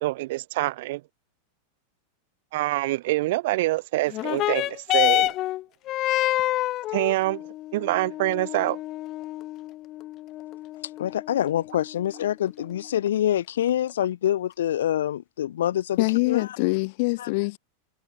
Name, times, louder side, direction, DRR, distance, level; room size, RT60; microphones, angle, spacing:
voice 1, 0.0-1.0 2.5-5.3 6.9-7.4 7.7-8.8, right 18 dB, 65° right, 2.5 m, -25 dB
sound 1, 4.1-13.1 13.9-14.0, left 15 dB, 40° left, 7.4 m, -28 dB
voice 2, 11.0-16.5 17.2-17.3, left 11 dB, 85° left, 6.0 m, -26 dB
voice 3, 16.0-17.6, left 27 dB, 60° left, 1.9 m, -24 dB
supercardioid pair, 130°, 0 cm